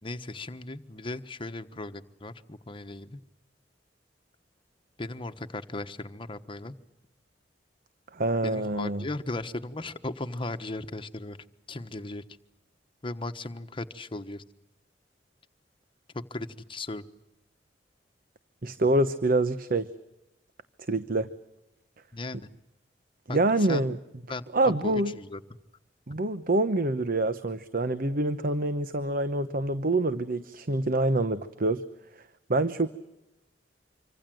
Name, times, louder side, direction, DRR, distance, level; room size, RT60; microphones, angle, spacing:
voice 1, 0.0-3.2 5.0-6.8 8.4-11.4 11.7-12.2 13.0-14.4 16.1-17.0 22.1-22.4 23.3-23.9 24.3-25.4, left 2 dB, 30° left, 8 dB, 1.3 m, -37 dB
voice 2, 8.1-9.0 18.6-19.9 20.9-21.3 23.3-24.0 24.5-25.1 26.1-31.8 32.5-32.9, right 2 dB, 55° right, 11 dB, 1.0 m, -26 dB
26.0 x 25.0 x 7.8 m, 0.92 s
head